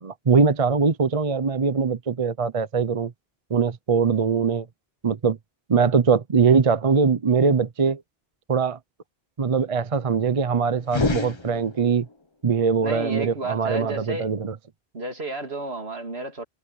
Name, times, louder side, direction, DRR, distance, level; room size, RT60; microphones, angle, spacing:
voice 1, 0.0-3.1 3.5-4.7 5.0-5.4 5.7-8.0 8.5-8.8 9.4-12.1 12.4-14.5, right 5 dB, 35° right, 0.8 m, -22 dB
sound 1, 10.8-12.1, left 3 dB, 25° left, 1.2 m, -27 dB
voice 2, 12.8-14.3 14.9-16.4, right 2 dB, 80° right, 3.0 m, -31 dB
omnidirectional pair, 1.0 m